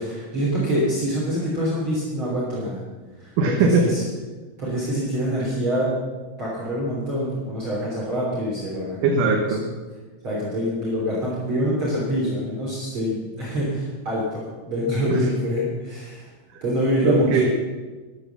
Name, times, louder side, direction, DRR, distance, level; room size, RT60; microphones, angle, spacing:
voice 1, 0.0-2.8 3.2-4.0 4.6-5.9 6.4-9.0 9.4-9.5 10.2-14.4 14.7-16.3 16.6-17.3, equal, 40° right, -6 dB, 3.9 m, -25 dB
voice 2, 3.4-3.8 9.0-9.6 15.1-15.3 16.5-16.6 17.0-17.5, right 3 dB, 80° right, 1 dB, 2.9 m, -20 dB
13.0 x 11.5 x 7.2 m, 1.3 s
omnidirectional pair, 3.7 m